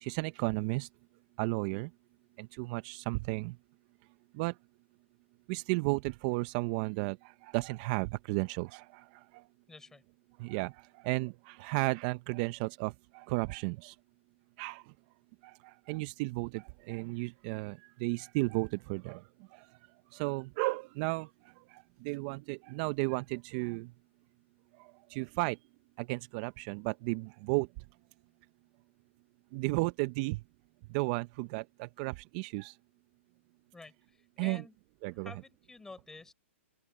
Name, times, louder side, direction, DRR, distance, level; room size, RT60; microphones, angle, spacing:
voice 1, 0.0-0.9 1.4-1.9 2.4-3.6 4.3-4.6 5.5-9.4 10.4-14.0 14.6-14.9 15.4-19.2 19.5-19.7 20.1-23.9 24.8-25.6 26.0-27.7 29.5-30.4 30.9-32.8 34.4-34.6 35.0-35.3, right 25 dB, 40° right, 1.0 m, -34 dB
voice 2, 9.7-10.0 33.7-34.8 35.2-36.3, left 3 dB, 5° left, 7.0 m, -50 dB
open air
hypercardioid pair, 130°, 7 cm